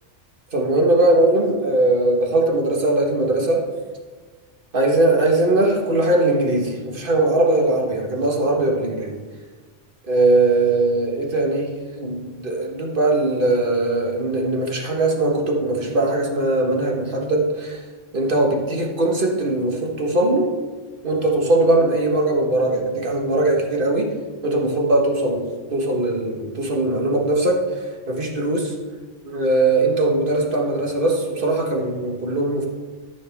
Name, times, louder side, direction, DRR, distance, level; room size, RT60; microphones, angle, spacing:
voice 1, 0.5-3.6 4.7-9.2 10.1-11.7 12.0-17.8 18.1-20.5 21.0-24.1 24.4-25.4 25.7-28.7 29.2-32.7, right 2 dB, 45° right, 0 dB, 1.6 m, -20 dB
13.0 x 6.9 x 3.6 m, 1.4 s
omnidirectional pair, 1.2 m